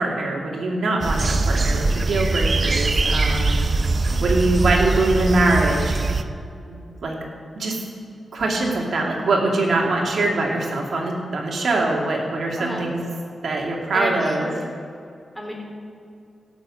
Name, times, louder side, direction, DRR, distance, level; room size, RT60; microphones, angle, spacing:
voice 1, 0.0-3.6 4.2-5.9 6.7-7.2 7.5-7.8 8.3-13.0 13.4-14.5, right 2 dB, 70° right, -1 dB, 2.6 m, -23 dB
sound 1, 1.0-6.2, right 3 dB, 45° right, 0.7 m, -22 dB
voice 2, 4.1-4.4 12.6-12.8 13.9-14.5 15.3-15.5, equal, 5° left, -2 dB, 4.0 m, -30 dB
16.0 x 6.9 x 7.6 m, 2.5 s
cardioid pair, 85°, 0 cm